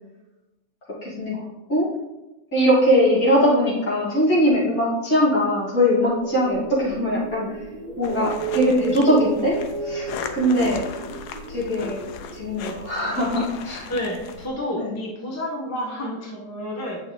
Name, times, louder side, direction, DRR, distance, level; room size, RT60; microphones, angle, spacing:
voice 1, 1.0-1.9 2.5-7.6 8.0-10.1 10.3-10.8 11.5-13.9 14.8-15.0, equal, 55° left, -7 dB, 2.9 m, -21 dB
sound 1, 5.9-14.0, right 5 dB, 50° right, 1.1 m, -33 dB
sound 2, 8.0-14.5, left 7 dB, 70° left, 1.1 m, -38 dB
voice 2, 13.9-17.0, left 1 dB, 10° left, -3 dB, 1.1 m, -30 dB
8.7 x 6.1 x 3.2 m, 1.0 s
omnidirectional pair, 1.9 m